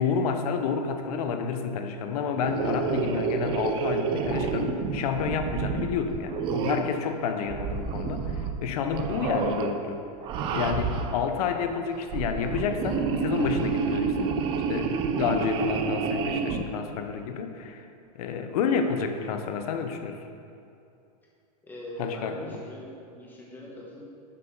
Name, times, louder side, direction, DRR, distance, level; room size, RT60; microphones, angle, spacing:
voice 1, 0.0-10.0 10.5-14.3 14.7-17.9 18.1-20.2 22.0-22.5, left 6 dB, 65° left, 6 dB, 0.7 m, -29 dB
sound 1, 2.4-7.0 7.5-8.6 8.9-9.7 10.2-11.2 11.9-16.6, right 6 dB, 25° right, 0.4 m, -29 dB
voice 2, 9.1-9.4 21.6-24.0, left 1 dB, 10° left, -4 dB, 1.3 m, -41 dB
7.1 x 4.6 x 5.3 m, 2.6 s
supercardioid pair, 150°, 21 cm